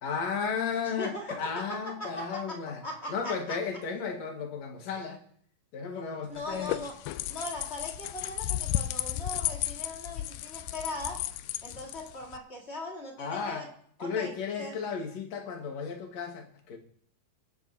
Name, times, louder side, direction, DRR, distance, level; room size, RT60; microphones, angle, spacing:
voice 1, 0.0-2.8 3.1-5.2 5.7-6.8 13.2-13.6 14.0-16.8, left 6 dB, 55° left, 2.5 m, -34 dB
voice 2, 0.9-3.6 6.3-6.9 7.3-11.2 11.6-13.7 14.0-14.7, left 1 dB, 30° left, 1.4 m, -39 dB
sound 1, 6.4-12.4, left 14 dB, 80° left, 2.1 m, -34 dB
23.5 x 10.5 x 2.7 m
omnidirectional pair, 4.0 m